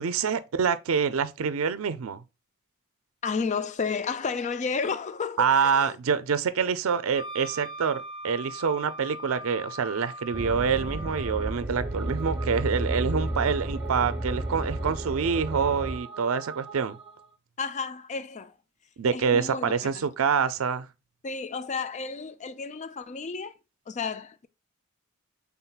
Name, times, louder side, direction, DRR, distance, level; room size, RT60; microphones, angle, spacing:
voice 1, 0.0-2.2 5.4-17.0 19.0-20.9, right 6 dB, 75° right, 0.4 m, -26 dB
voice 2, 3.2-6.0 17.6-18.5 19.1-20.0 21.2-23.5 23.9-24.5, left 5 dB, 35° left, 0.4 m, -32 dB
Wind instrument woodwind instrument, 7.1-11.6, right 1 dB, 80° left, 2.1 m, -40 dB
sound 1, 10.3-16.0, right 1 dB, 5° right, 1.1 m, -32 dB
sound 2, 11.6-17.3, right 3 dB, 25° right, 0.5 m, -43 dB
5.8 x 3.5 x 2.3 m
head